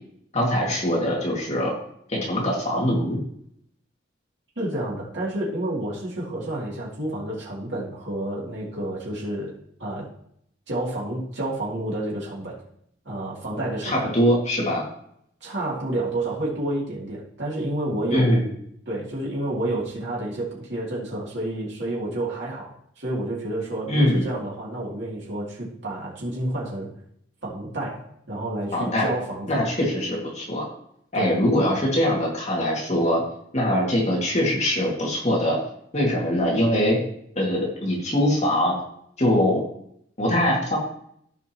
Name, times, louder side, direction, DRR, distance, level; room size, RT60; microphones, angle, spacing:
voice 1, 0.3-1.7 2.1-3.2 13.8-14.8 18.1-18.4 23.9-24.3 28.7-29.1 29.5-30.6 31.1-33.2 33.5-35.6 35.9-37.0 37.4-38.7 39.2-39.6 40.2-40.8, equal, 35° left, -4 dB, 2.3 m, -22 dB
voice 2, 4.6-10.1 10.7-12.6 13.0-14.1 15.4-18.5 18.9-26.9 27.4-29.6 31.1-31.4, right 1 dB, 70° right, -5 dB, 2.9 m, -30 dB
14.5 x 5.4 x 3.0 m, 0.68 s
head